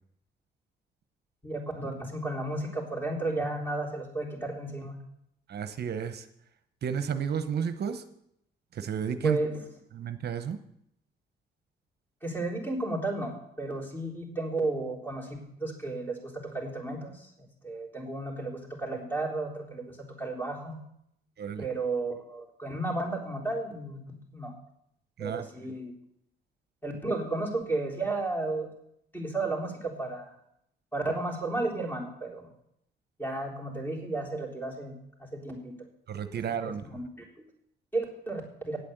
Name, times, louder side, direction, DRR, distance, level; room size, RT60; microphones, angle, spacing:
voice 1, 1.4-5.0 9.2-9.6 12.2-17.3 17.6-20.8 21.6-24.5 25.2-25.9 26.8-28.7 29.1-30.4 30.9-32.5 33.2-35.8 36.6-37.0 37.9-38.8, right 2 dB, 10° left, -1 dB, 3.7 m, -33 dB
voice 2, 5.5-6.3 6.8-8.0 8.7-9.4 9.9-10.6 21.4-21.7 25.2-25.5 36.1-36.8, right 7 dB, 55° right, 9 dB, 0.9 m, -32 dB
9.4 x 8.4 x 7.9 m, 0.76 s
cardioid pair, 90°, 20 cm